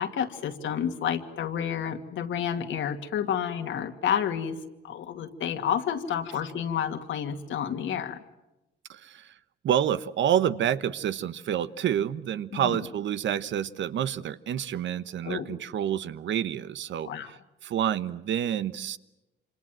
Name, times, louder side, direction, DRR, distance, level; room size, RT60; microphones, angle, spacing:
voice 1, 0.0-4.6 4.8-8.2 12.5-12.8 15.2-15.5 17.0-17.3, left 8 dB, 75° left, 7 dB, 2.3 m, -30 dB
voice 2, 8.9-9.3 9.6-17.1 17.6-19.0, right 10 dB, 70° right, 14 dB, 1.1 m, -28 dB
27.0 x 26.5 x 7.6 m, 0.98 s
cardioid pair, 90°, 20 cm